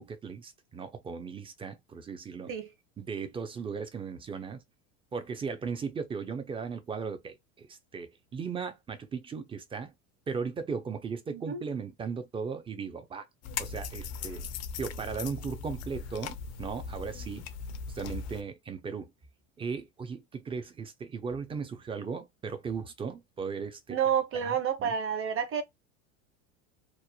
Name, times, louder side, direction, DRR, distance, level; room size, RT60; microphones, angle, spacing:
voice 1, 0.0-2.5 3.0-4.6 5.1-9.9 10.3-13.3 13.6-14.4 14.8-17.5 17.9-19.1 19.6-24.0 24.3-24.9, right 5 dB, 15° right, 0.4 m, -37 dB
voice 2, 11.3-11.6 23.9-25.6, right 8 dB, 35° right, 0.8 m, -29 dB
sound 1, 13.4-18.4, left 6 dB, 45° left, 0.5 m, -39 dB
3.0 x 2.0 x 2.3 m
supercardioid pair, 110°, 39 cm